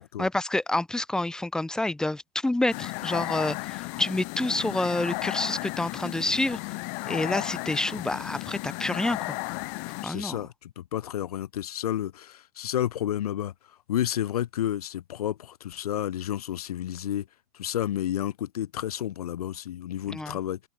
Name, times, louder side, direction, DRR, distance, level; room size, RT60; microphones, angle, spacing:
voice 1, 0.2-6.6 7.1-9.4 10.0-10.4 20.1-20.4, left 2 dB, 5° left, 0.7 m, -28 dB
sound 1, 2.7-10.1, left 40 dB or more, 45° left, 0.7 m, -34 dB
voice 2, 10.0-13.5 13.9-17.3 17.5-20.6, left 11 dB, 85° left, 1.5 m, -31 dB
open air
hypercardioid pair, 135°, 19 cm